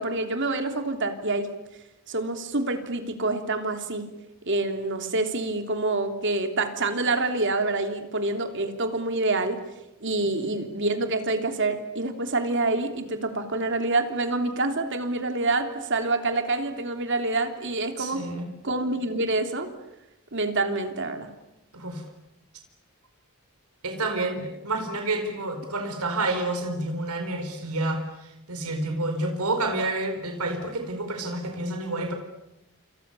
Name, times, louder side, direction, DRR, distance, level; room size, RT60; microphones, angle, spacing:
voice 1, 0.0-1.5 2.1-4.1 4.4-9.6 10.0-18.2 18.6-19.7 20.3-21.3, right 2 dB, 55° right, 6 dB, 3.2 m, -27 dB
voice 2, 18.0-18.5 21.7-22.0 23.8-32.1, right 2 dB, 90° right, 5 dB, 4.7 m, -29 dB
28.0 x 28.0 x 7.0 m, 0.91 s
head